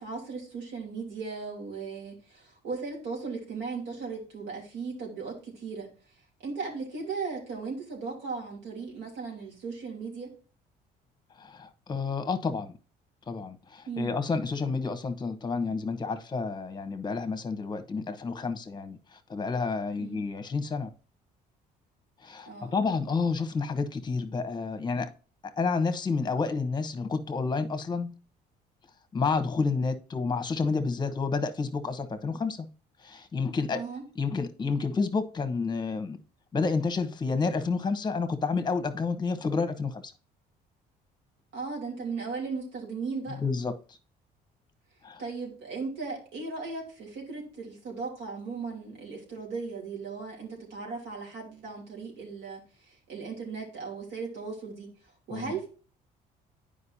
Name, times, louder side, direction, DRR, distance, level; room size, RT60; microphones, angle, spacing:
voice 1, 0.0-5.9 6.4-10.3 13.9-14.1 20.0-20.2 22.5-22.8 33.7-34.0 41.5-43.4 45.2-52.6 52.9-54.9 55.3-55.7, right 4 dB, 85° right, -1 dB, 3.0 m, -37 dB
voice 2, 11.4-12.8 13.3-20.9 22.2-25.1 25.6-28.1 29.1-32.7 33.0-33.8 34.2-36.2 36.5-40.1 43.4-43.7 45.0-45.2 55.3-55.5, left 4 dB, 25° left, 10 dB, 1.0 m, -30 dB
9.5 x 5.1 x 2.7 m, 0.37 s
cardioid pair, 110°, 17 cm